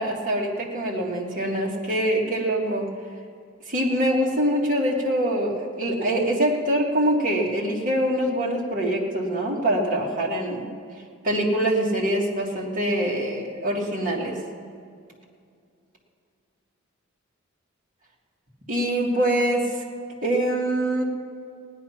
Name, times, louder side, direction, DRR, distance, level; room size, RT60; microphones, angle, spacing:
voice 1, 0.0-2.9 3.7-10.7 11.2-14.4 18.7-19.7 20.2-21.0, right 1 dB, 40° right, -3 dB, 2.2 m, -24 dB
16.5 x 10.5 x 5.8 m, 2.3 s
head